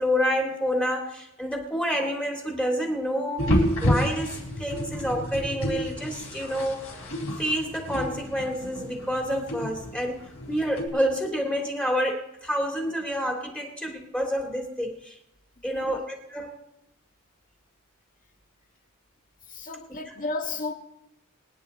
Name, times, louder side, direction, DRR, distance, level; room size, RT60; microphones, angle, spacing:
voice 1, 0.0-6.9 7.4-15.2 15.6-16.6 19.9-20.1, equal, 5° left, 2.3 m, -28 dB
sound 1, 3.4-10.9, left 1 dB, 70° left, 4.3 m, -30 dB
voice 2, 15.6-16.0 19.5-20.7, left 3 dB, 40° left, 1.8 m, -34 dB
23.5 x 9.5 x 4.2 m
head